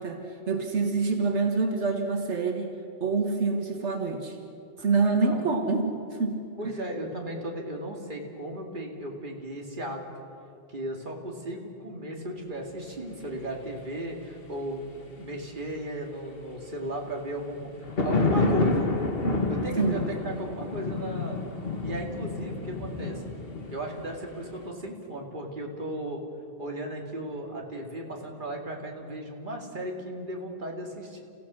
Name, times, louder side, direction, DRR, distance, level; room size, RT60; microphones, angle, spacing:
voice 1, 0.0-2.8 3.0-4.4 4.8-6.7 19.8-20.1, right 4 dB, 85° right, 3 dB, 1.8 m, -27 dB
voice 2, 5.0-5.4 6.6-10.0 10.7-17.7 18.0-18.9 19.5-21.4 21.8-23.2 23.7-26.2 26.6-31.2, right 1 dB, 45° right, 0 dB, 2.5 m, -36 dB
sound 1, 17.6-24.7, left 3 dB, 55° left, 2.0 m, -29 dB
30.0 x 15.5 x 6.3 m, 2.7 s
omnidirectional pair, 1.1 m